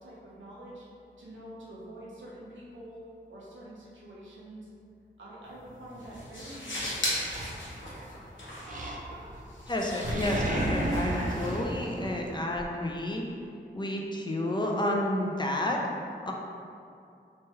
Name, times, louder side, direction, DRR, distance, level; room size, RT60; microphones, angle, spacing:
voice 1, 0.0-0.8 1.2-4.7 5.2-7.2, right 1 dB, 85° right, -6 dB, 0.7 m, -46 dB
sound 1, 5.4-12.3, left 1 dB, 85° left, 0.7 m, -38 dB
Animal, 7.3-8.1 8.6-9.4 9.7-12.7, right 1 dB, 45° right, 0.4 m, -33 dB
voice 2, 9.7-13.2 13.7-15.8 16.3-16.4, left 1 dB, 25° left, -1 dB, 0.4 m, -30 dB
3.1 x 2.2 x 2.9 m, 2.4 s
cardioid pair, 55°, 19 cm